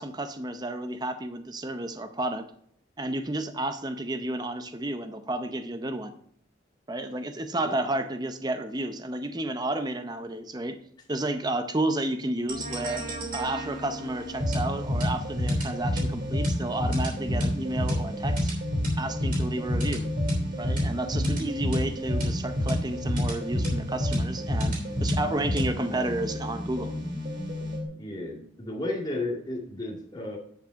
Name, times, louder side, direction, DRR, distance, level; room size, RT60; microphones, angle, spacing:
voice 1, 0.0-2.4 3.0-6.1 6.9-10.8 11.1-13.0 13.3-18.5 19.0-20.1 20.6-26.9, right 1 dB, 20° right, 8 dB, 0.6 m, -31 dB
sound 1, 12.5-27.8, equal, 45° right, 3.1 m, -29 dB
voice 2, 28.0-30.4, left 2 dB, 20° left, -2 dB, 2.0 m, -33 dB
10.5 x 5.4 x 5.1 m, 0.64 s
head